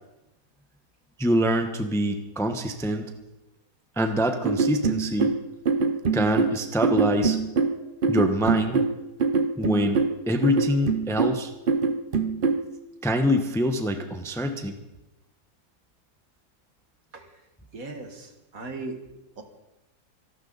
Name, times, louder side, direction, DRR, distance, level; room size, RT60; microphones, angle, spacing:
voice 1, 1.2-3.1 4.0-5.4 6.1-7.4 8.1-8.8 9.6-10.0 10.3-11.5 13.0-14.7, equal, ahead, 6 dB, 0.9 m, -25 dB
sound 1, 4.4-12.7, right 5 dB, 40° right, 0.9 m, -24 dB
voice 2, 17.7-19.0 19.4-19.5, right 3 dB, 60° right, 5 dB, 2.2 m, -38 dB
25.5 x 12.5 x 4.1 m, 0.97 s
omnidirectional pair, 1.7 m